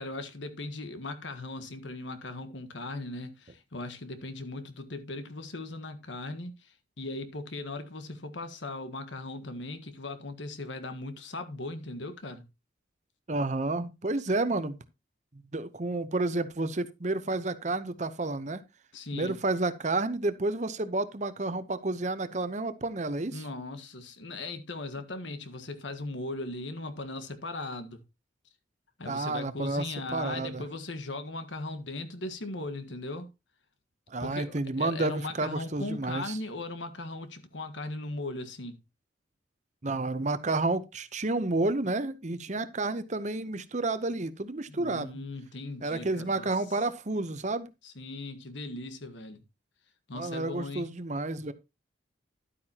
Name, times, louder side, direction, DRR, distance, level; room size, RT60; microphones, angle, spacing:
voice 1, 0.0-12.5 18.9-19.4 23.3-28.0 29.0-33.3 34.2-38.8 44.7-46.9 47.8-49.4 50.1-50.9, left 2 dB, 75° left, 1.5 m, -38 dB
voice 2, 13.3-14.8 15.5-18.6 19.1-23.4 29.0-29.8 30.1-30.6 34.1-36.4 39.8-45.1 45.8-47.7 50.1-51.5, right 2 dB, 40° right, 0.8 m, -30 dB
11.5 x 8.8 x 2.9 m
head